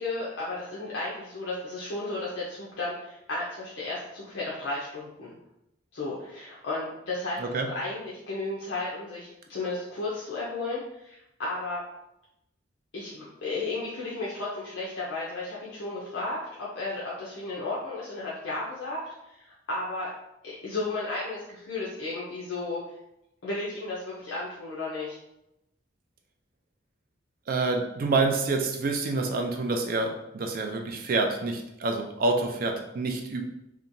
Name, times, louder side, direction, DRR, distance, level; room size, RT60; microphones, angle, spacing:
voice 1, 0.0-5.3 5.9-7.4 7.7-11.8 12.9-19.0 19.7-20.1 20.4-22.8 23.4-25.2, left 2 dB, 65° left, -6 dB, 0.5 m, -33 dB
voice 2, 27.5-33.4, right 3 dB, 50° right, 3 dB, 0.4 m, -27 dB
2.8 x 2.2 x 2.6 m, 0.86 s
head